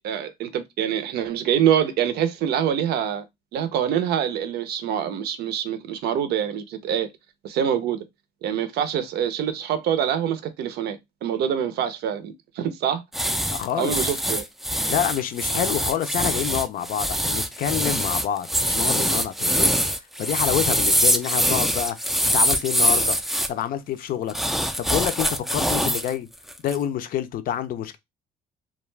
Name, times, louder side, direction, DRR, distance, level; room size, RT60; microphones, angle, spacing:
voice 1, 0.0-3.3 3.5-7.1 7.4-8.0 8.4-13.3 13.8-14.4, right 9 dB, 70° right, 0.5 m, -25 dB
sound 1, 13.1-23.5 24.3-26.1 26.5-26.8, equal, ahead, 0.3 m, -23 dB
voice 2, 13.5-14.0 14.9-19.8 20.2-22.0 22.3-23.2 23.5-24.4 24.8-26.3 26.6-28.0, left 10 dB, 60° left, 0.5 m, -27 dB
2.3 x 2.2 x 3.1 m
cardioid pair, 110°, 17 cm